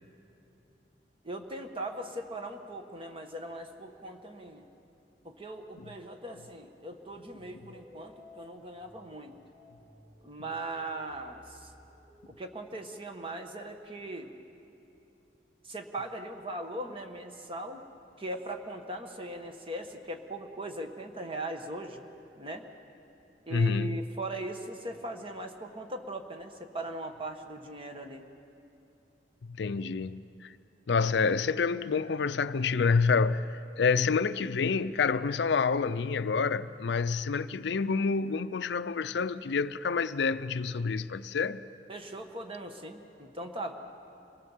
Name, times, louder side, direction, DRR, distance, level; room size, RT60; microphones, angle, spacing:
voice 1, 1.2-4.7 5.2-9.4 10.2-11.7 12.3-14.3 15.6-17.9 18.2-22.0 22.3-22.7 23.4-28.3 41.9-43.7, right 1 dB, 30° right, 1.4 m, -39 dB
sound 1, 7.1-12.4, left 1 dB, 5° right, 2.9 m, -57 dB
voice 2, 23.5-23.9 29.5-30.5 30.9-41.6, left 5 dB, 70° left, 0.5 m, -28 dB
25.5 x 18.0 x 7.3 m
head